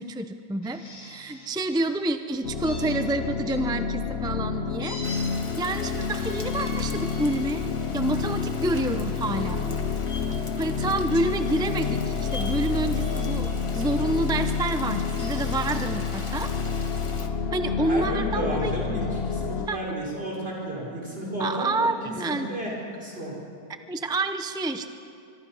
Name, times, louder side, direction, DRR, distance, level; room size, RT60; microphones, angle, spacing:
voice 1, 0.0-5.2 5.6-9.7 10.6-16.5 17.5-18.7 19.7-19.8 21.4-22.5 23.9-24.9, right 2 dB, 5° right, 8 dB, 0.3 m, -28 dB
sound 1, 0.6-1.8 2.6-3.6 4.8-5.2 6.1-7.4 8.0-8.2 10.0-10.2 11.1-11.6 12.3-12.6 13.0-13.5 14.9-15.9, left 1 dB, 85° left, 6.3 m, -43 dB
sound 2, 2.4-19.7, left 5 dB, 50° left, 1.0 m, -29 dB
Rain, 5.0-17.3, left 2 dB, 20° left, 1.2 m, -42 dB
voice 2, 17.8-23.3, equal, 40° right, -4 dB, 5.6 m, -32 dB
24.5 x 23.5 x 5.6 m, 2.5 s
omnidirectional pair, 1.6 m